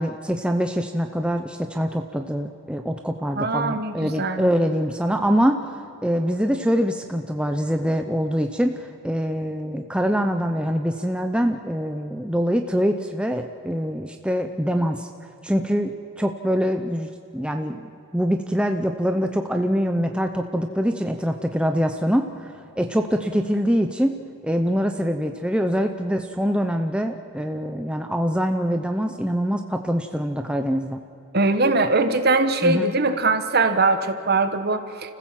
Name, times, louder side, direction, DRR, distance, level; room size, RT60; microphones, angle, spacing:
voice 1, 0.0-5.6 6.0-15.1 15.4-17.8 18.1-24.1 24.4-31.0 32.6-32.9, equal, 5° right, 5 dB, 0.7 m, -24 dB
voice 2, 3.4-4.5 31.3-35.1, right 3 dB, 45° right, 9 dB, 1.3 m, -21 dB
30.0 x 15.0 x 7.6 m, 2.9 s
head